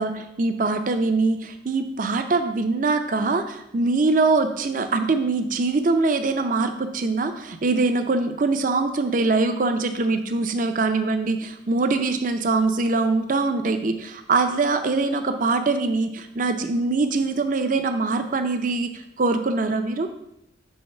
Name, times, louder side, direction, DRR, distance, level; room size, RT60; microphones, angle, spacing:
voice 1, 0.0-18.9 19.2-20.1, right 3 dB, 45° right, 8 dB, 0.5 m, -23 dB
5.5 x 3.9 x 5.5 m, 0.82 s
head